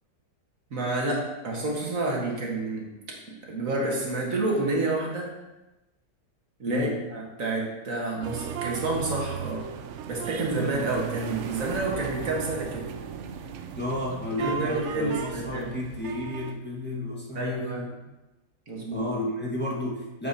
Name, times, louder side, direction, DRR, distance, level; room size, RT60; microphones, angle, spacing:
voice 1, 0.7-2.9 3.5-5.3 6.6-9.7 10.1-12.9 14.4-15.7 17.4-17.9 18.7-19.1, right 2 dB, 55° right, -1 dB, 1.9 m, -29 dB
voice 2, 6.6-7.0 13.7-17.9 18.9-20.3, left 2 dB, 5° left, -5 dB, 1.3 m, -32 dB
sound 1, 8.2-16.5, right 7 dB, 75° right, 0.6 m, -36 dB
8.3 x 7.9 x 2.8 m, 1.0 s
omnidirectional pair, 1.8 m